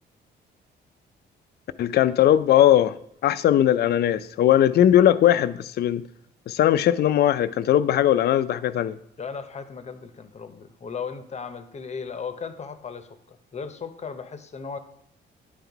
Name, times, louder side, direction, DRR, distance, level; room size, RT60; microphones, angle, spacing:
voice 1, 1.8-2.9 3.2-6.0 6.5-9.0, left 11 dB, 55° left, 0.4 m, -19 dB
voice 2, 9.2-14.8, left 5 dB, 35° left, 0.7 m, -36 dB
10.0 x 3.9 x 4.6 m
cardioid pair, 90°, 20 cm